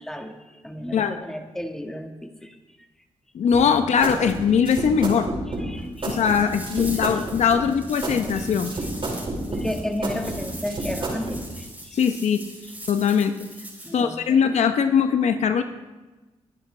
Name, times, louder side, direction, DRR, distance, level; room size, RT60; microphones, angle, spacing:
voice 1, 0.0-2.8 3.8-4.3 5.5-6.6 7.1-7.2 7.5-7.7 8.0-8.5 9.5-12.0 13.8-14.4, left 1 dB, 5° left, 5 dB, 1.5 m, -34 dB
voice 2, 3.3-5.3 6.1-8.7 11.9-12.4 12.9-13.3 13.9-15.6, left 7 dB, 80° left, 8 dB, 0.8 m, -21 dB
sound 1, 3.5-11.4, right 2 dB, 50° right, 5.1 m, -30 dB
sound 2, 5.9-14.0, right 1 dB, 15° right, 4.7 m, -42 dB
22.0 x 10.5 x 3.3 m, 1.1 s
cardioid pair, 65°, 12 cm